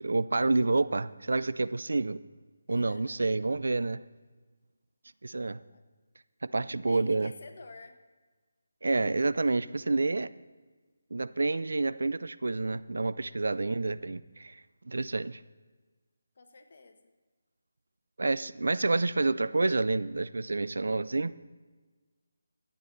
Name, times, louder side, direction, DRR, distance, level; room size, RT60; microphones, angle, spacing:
voice 1, 0.0-2.2 2.7-4.0 5.2-5.6 6.5-7.3 8.8-10.3 11.1-14.6 14.9-15.4 18.2-21.3, right 3 dB, 75° right, 16 dB, 0.4 m, -28 dB
voice 2, 2.7-3.4 5.6-5.8 6.8-8.0 16.4-17.0, left 3 dB, 50° left, 6 dB, 1.1 m, -51 dB
13.0 x 8.8 x 4.0 m, 1.3 s
figure-of-eight pair, 170°, 0 cm